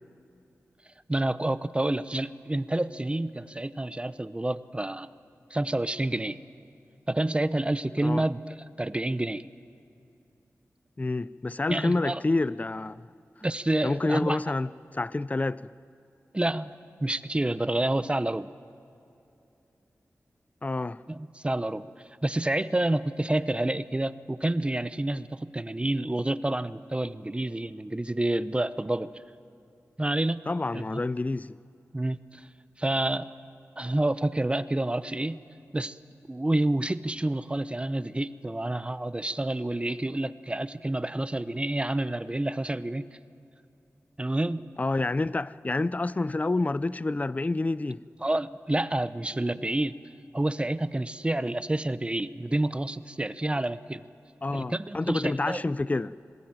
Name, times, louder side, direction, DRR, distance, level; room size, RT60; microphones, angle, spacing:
voice 1, 1.1-5.1 5.5-6.4 7.1-9.4 11.7-12.2 13.4-14.4 16.3-16.7 17.0-18.5 21.1-21.9 22.2-29.1 30.0-30.4 30.7-30.8 31.9-32.5 32.8-33.3 33.8-35.4 35.7-36.0 36.3-43.1 44.2-44.7 48.2-50.0 50.3-54.0 54.5-55.6, right 1 dB, 20° right, 0.8 m, -28 dB
voice 2, 11.0-13.0 13.8-15.7 20.6-21.0 30.5-31.6 44.8-48.0 54.4-56.1, left 2 dB, 25° left, 0.5 m, -28 dB
27.0 x 19.5 x 9.1 m
wide cardioid pair, 65°, 6 cm